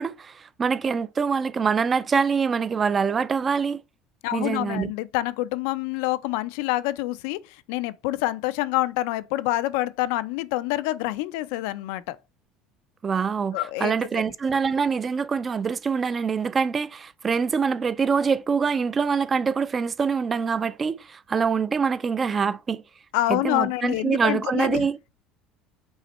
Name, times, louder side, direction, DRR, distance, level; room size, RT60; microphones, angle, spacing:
voice 1, 0.0-3.8 4.3-4.9 13.0-22.8 23.3-25.0, right 5 dB, 25° right, 0.4 m, -25 dB
voice 2, 4.2-7.4 7.7-12.2 13.5-13.9 23.1-24.9, left 17 dB, 85° left, 0.5 m, -26 dB
5.6 x 4.2 x 4.1 m
cardioid pair, 145°, 0 cm